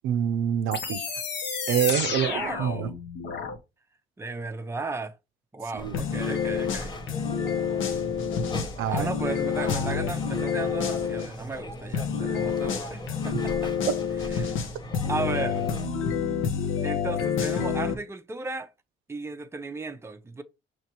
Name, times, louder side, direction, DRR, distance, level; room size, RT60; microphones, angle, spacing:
voice 1, 0.0-1.1 1.7-2.3 2.6-2.9 5.7-6.0 8.8-9.1, right 9 dB, 90° right, 0.5 m, -26 dB
sound 1, 0.7-3.6, left 5 dB, 60° left, 1.1 m, -31 dB
voice 2, 2.1-2.9 4.2-5.1 5.5-6.9 8.9-13.7 14.3-14.6 15.1-15.6 16.8-18.7 19.1-20.4, right 3 dB, 15° right, 0.5 m, -35 dB
sound 2, 5.8-15.9, left 1 dB, 20° left, 0.7 m, -38 dB
sound 3, 5.9-11.3 11.9-17.9, left 7 dB, 80° left, 0.8 m, -28 dB
5.6 x 3.1 x 2.9 m
cardioid pair, 90°, 20 cm